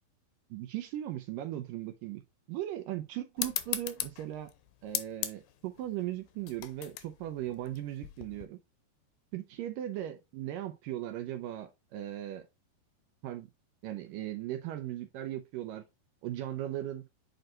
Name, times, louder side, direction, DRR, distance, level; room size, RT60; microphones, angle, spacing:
voice 1, 0.5-2.2 2.5-4.5 4.8-8.6 9.3-12.4 13.2-13.5 13.8-15.8 16.2-17.1, right 13 dB, 80° right, 2.2 m, -38 dB
sound 1, 3.4-8.5, left 13 dB, 75° left, 2.3 m, -38 dB
7.8 x 4.6 x 2.9 m
omnidirectional pair, 4.2 m